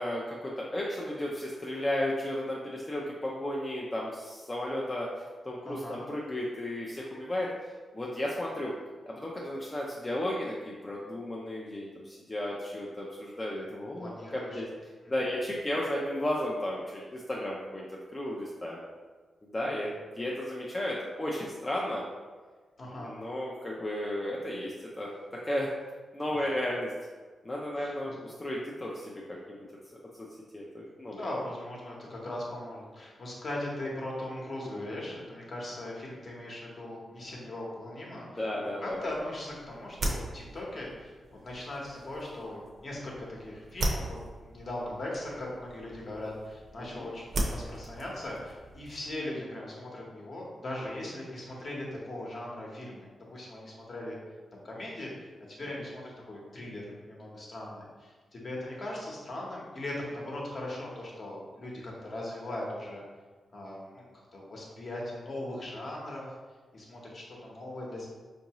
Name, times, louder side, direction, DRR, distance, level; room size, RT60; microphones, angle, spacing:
voice 1, 0.0-5.1 5.4-7.5 7.9-8.7 9.1-14.7 15.1-17.9 18.1-18.8 19.4-22.0 23.0-25.1 25.4-25.7 26.1-26.9 27.4-29.2 29.5-29.6 30.5-31.2 38.1-39.0 46.9-47.1 55.6-55.7, left 1 dB, 20° left, -4 dB, 0.4 m, -34 dB
voice 2, 5.6-6.0 14.0-14.6 15.0-15.1 19.8-19.9 22.8-23.1 27.7-28.2 31.1-38.5 38.8-44.2 44.4-54.2 54.5-55.1 55.5-63.0 63.5-66.3 66.7-68.1, left 1 dB, 45° left, -3 dB, 0.9 m, -39 dB
sound 1, 38.9-49.2, right 1 dB, 55° right, 0.6 m, -38 dB
4.5 x 2.6 x 2.9 m, 1.4 s
wide cardioid pair, 135°, 0 cm